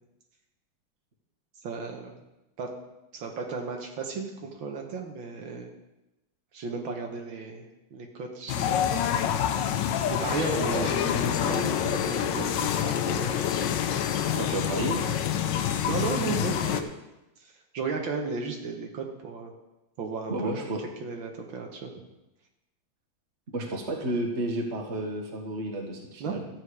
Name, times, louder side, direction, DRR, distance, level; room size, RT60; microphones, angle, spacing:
voice 1, 1.6-2.1 2.6-2.7 3.1-5.7 6.5-7.7 7.9-9.0 9.3-9.5 10.1-13.4 15.6-17.0 17.4-19.5 20.0-20.7 21.0-21.9 26.2-26.5, right 4 dB, 75° right, 2 dB, 1.9 m, -35 dB
sound 1, 8.5-16.8, left 9 dB, 75° left, 1.3 m, -27 dB
voice 2, 10.4-10.9 11.4-11.7 14.3-15.0 20.3-20.8 23.5-26.4, right 1 dB, 35° right, 1 dB, 1.7 m, -32 dB
13.0 x 7.6 x 4.8 m, 0.97 s
omnidirectional pair, 2.2 m